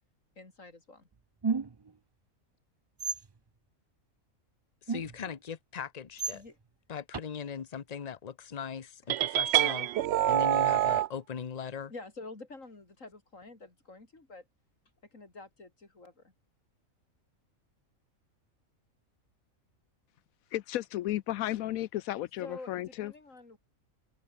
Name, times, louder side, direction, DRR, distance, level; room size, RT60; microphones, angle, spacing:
voice 1, 0.4-1.1 6.3-6.6 11.9-14.5 15.1-16.3 22.4-23.6, left 3 dB, 65° left, 4.6 m, -48 dB
sound 1, 1.4-1.9 3.0-3.3 4.9-5.3 6.2-6.3 7.1-7.2, right 5 dB, 45° right, 0.3 m, -32 dB
voice 2, 4.8-6.4 6.9-9.9 10.3-11.9, left 7 dB, 35° left, 0.8 m, -39 dB
sound 2, 9.1-11.1, right 13 dB, 65° right, 0.7 m, -26 dB
voice 3, 20.5-23.1, left 14 dB, 85° left, 1.0 m, -33 dB
omnidirectional pair, 1.4 m